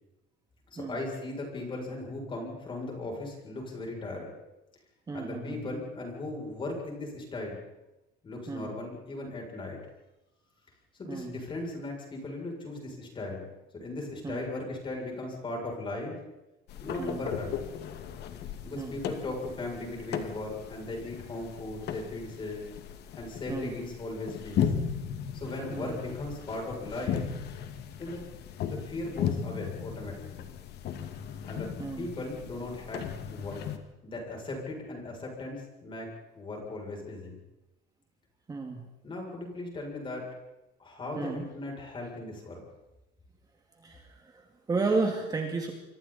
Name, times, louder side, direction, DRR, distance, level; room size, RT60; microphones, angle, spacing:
voice 1, 0.7-4.3 5.1-7.7 8.2-9.8 11.0-13.5 13.8-16.2 16.8-17.6 18.6-22.6 23.2-24.7 25.3-27.3 28.0-28.2 28.7-30.5 31.4-33.0 33.3-33.6 34.0-37.4 39.0-40.3 40.8-42.6, left 2 dB, 25° left, 0 dB, 7.5 m, -37 dB
voice 2, 5.1-5.6 8.5-8.7 11.1-11.4 14.2-14.4 17.0-17.3 18.8-19.0 23.5-23.7 25.7-26.0 31.8-32.1 38.5-38.8 41.2-41.5 43.8-45.7, right 3 dB, 20° right, 2 dB, 2.4 m, -32 dB
sound 1, 16.7-33.8, left 8 dB, 55° left, 2.2 m, -36 dB
28.0 x 24.5 x 4.4 m, 0.98 s
cardioid pair, 145°, 20 cm